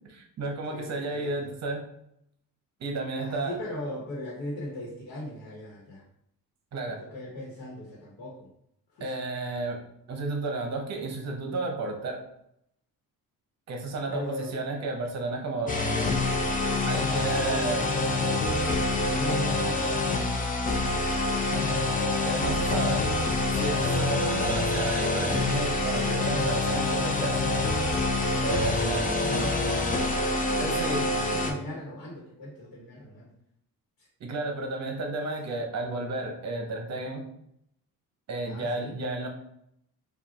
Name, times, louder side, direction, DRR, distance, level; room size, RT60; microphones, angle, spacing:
voice 1, 0.1-1.8 2.8-3.6 6.7-7.0 9.0-9.8 10.1-12.2 13.7-15.8 16.9-17.8 22.2-23.1 23.5-27.4 28.4-29.0 30.6-31.1 34.2-37.3 38.3-39.3, right 2 dB, 50° right, 2 dB, 0.8 m, -32 dB
voice 2, 0.7-1.5 3.1-6.0 6.9-8.5 8.9-9.1 14.1-14.6 17.2-20.2 28.5-33.3 34.0-34.1 38.4-38.9, left 1 dB, 80° left, -3 dB, 1.1 m, -39 dB
sound 1, 15.7-31.5, left 2 dB, 25° left, 0.5 m, -26 dB
5.0 x 2.3 x 2.9 m, 0.76 s
cardioid pair, 150°, 35 cm